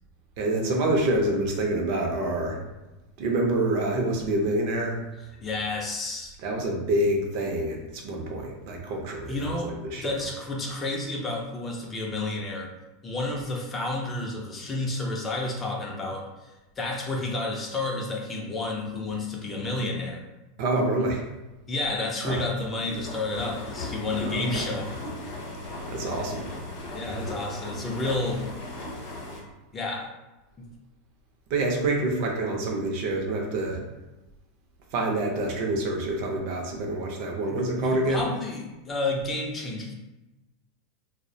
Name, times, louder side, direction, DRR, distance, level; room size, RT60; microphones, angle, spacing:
voice 1, 0.4-2.6 3.2-5.0 6.4-10.1 20.6-21.2 22.2-22.4 24.2-24.7 25.9-26.5 27.0-27.3 31.5-33.8 34.9-38.3, right 2 dB, 50° right, 1 dB, 0.5 m, -27 dB
voice 2, 5.4-6.4 9.3-12.7 13.0-20.3 21.7-24.9 26.9-28.5 29.7-30.1 30.6-30.7 37.5-39.9, left 2 dB, 15° left, -1 dB, 0.3 m, -31 dB
sound 1, 22.4-29.4, left 2 dB, 45° left, 0.7 m, -37 dB
2.3 x 2.0 x 2.6 m, 1.0 s
supercardioid pair, 160°, 0 cm